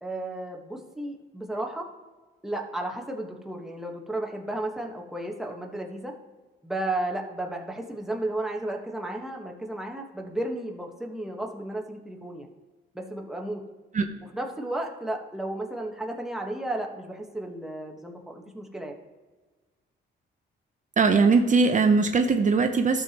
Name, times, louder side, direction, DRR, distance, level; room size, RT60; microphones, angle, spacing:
voice 1, 0.0-1.9 2.4-6.1 6.6-12.5 12.9-13.6 14.3-18.9, right 1 dB, ahead, 1 dB, 1.3 m, -33 dB
voice 2, 21.0-23.0, right 4 dB, 40° right, 7 dB, 0.7 m, -20 dB
12.5 x 6.9 x 3.0 m, 1.3 s
cardioid pair, 90°, 20 cm